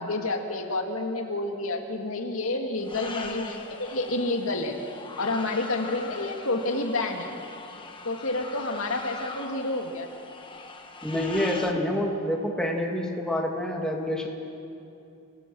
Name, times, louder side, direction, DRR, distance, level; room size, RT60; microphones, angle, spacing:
voice 1, 0.0-4.7 5.2-7.3 8.0-10.1, left 2 dB, 80° left, 3 dB, 2.2 m, -29 dB
sound 1, 2.8-11.7, left 4 dB, 25° left, 1.3 m, -41 dB
voice 2, 11.0-14.3, left 1 dB, 5° left, -1 dB, 2.3 m, -27 dB
30.0 x 18.0 x 6.2 m, 2.6 s
head